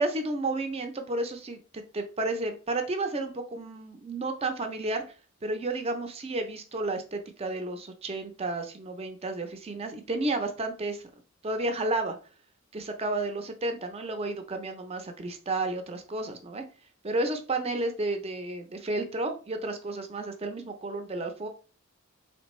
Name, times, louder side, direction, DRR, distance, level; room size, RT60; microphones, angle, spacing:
voice 1, 0.0-5.0 5.4-11.0 11.4-12.1 12.7-16.6 17.0-21.5, right 2 dB, 30° right, 6 dB, 0.5 m, -32 dB
4.3 x 3.2 x 3.1 m, 0.36 s
head